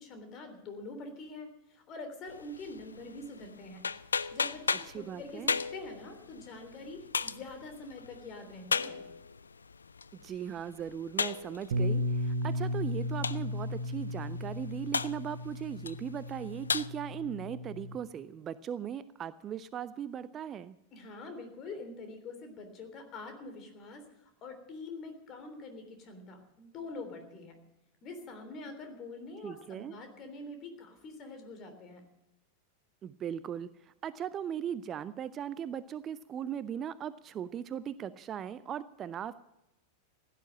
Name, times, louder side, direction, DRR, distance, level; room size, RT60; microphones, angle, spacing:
voice 1, 0.0-3.8 4.3-9.0 20.9-24.0 24.4-27.6 28.0-32.0, left 3 dB, 35° left, 7 dB, 3.4 m, -45 dB
sound 1, 2.3-16.9, left 5 dB, 75° left, 0.4 m, -37 dB
voice 2, 4.9-5.6 10.2-20.8 29.4-30.0 33.0-39.4, right 9 dB, 25° right, 16 dB, 0.5 m, -38 dB
Bass guitar, 11.7-18.0, left 1 dB, 60° right, 1.2 m, -35 dB
16.0 x 10.0 x 7.5 m, 0.90 s
figure-of-eight pair, 90°, 0 cm